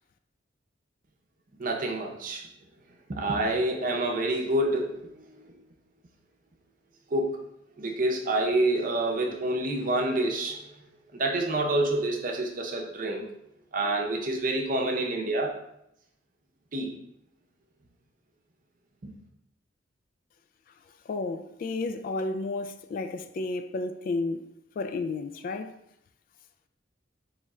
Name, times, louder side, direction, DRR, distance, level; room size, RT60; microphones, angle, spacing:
voice 1, 1.6-2.5 3.1-5.6 7.1-7.4 7.8-10.7 11.1-13.3 13.7-15.5 16.7-17.0 19.0-19.1, right 2 dB, 45° right, 0.7 m, -28 dB
voice 2, 21.1-24.4 24.8-25.7, left 3 dB, 50° left, 0.3 m, -32 dB
3.6 x 3.1 x 4.2 m
head